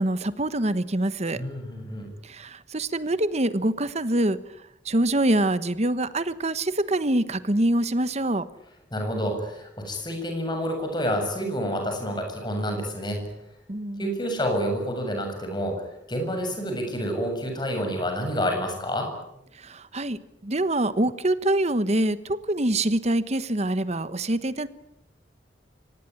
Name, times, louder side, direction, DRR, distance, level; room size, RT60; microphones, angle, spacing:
voice 1, 0.0-1.4 2.2-4.4 4.8-8.5 13.7-14.1 19.5-24.7, right 1 dB, 40° right, 14 dB, 1.2 m, -25 dB
voice 2, 1.3-2.1 8.9-13.2 14.0-19.1, equal, 25° left, 4 dB, 7.4 m, -28 dB
25.5 x 19.0 x 9.9 m, 0.80 s
head